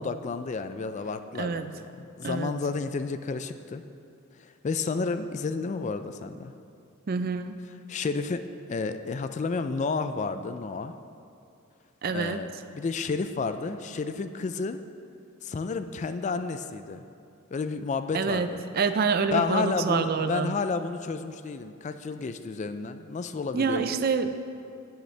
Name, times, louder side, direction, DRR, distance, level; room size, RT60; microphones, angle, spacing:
voice 1, 0.0-3.8 4.3-6.5 7.9-10.9 12.1-14.8 15.4-17.1 17.5-18.6 19.3-24.0, left 4 dB, 35° left, 10 dB, 0.3 m, -31 dB
voice 2, 1.4-1.7 2.2-2.6 7.1-7.6 12.0-12.4 18.1-18.5 18.7-20.6 23.5-24.4, right 5 dB, 45° right, 10 dB, 0.4 m, -27 dB
13.5 x 7.8 x 3.3 m, 2.5 s
head